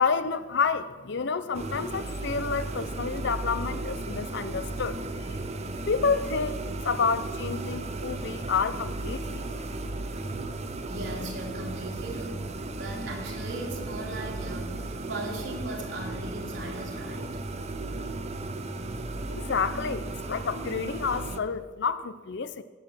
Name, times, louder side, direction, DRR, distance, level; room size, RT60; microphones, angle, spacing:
voice 1, 0.0-5.0 5.9-9.4 19.3-22.6, left 5 dB, 65° left, 13 dB, 0.6 m, -29 dB
sound 1, 1.5-21.4, right 2 dB, 35° right, 0.8 m, -35 dB
voice 2, 10.9-12.4 12.8-14.8 15.1-17.4, right 1 dB, 65° right, 1 dB, 2.5 m, -38 dB
18.0 x 6.7 x 6.0 m, 1.4 s
head